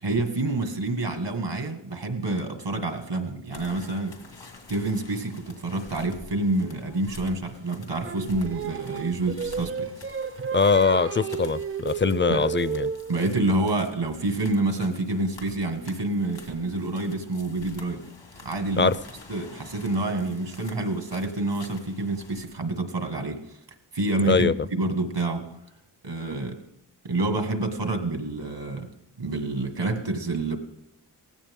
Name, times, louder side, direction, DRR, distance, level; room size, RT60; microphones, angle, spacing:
voice 1, 0.0-4.2 4.7-9.9 12.3-12.5 13.1-18.0 18.4-18.9 19.3-23.6 23.9-25.5 26.0-26.6 27.0-28.9 29.2-30.6, right 2 dB, 80° right, 1.9 m, -28 dB
sound 1, 3.5-22.5, left 3 dB, 90° left, 2.4 m, -48 dB
Singing, 8.0-13.2, right 7 dB, 35° right, 0.4 m, -32 dB
voice 2, 10.5-12.9 18.8-19.0 24.2-24.5, left 5 dB, 30° left, 0.4 m, -22 dB
18.0 x 15.5 x 3.7 m
wide cardioid pair, 85°, 42 cm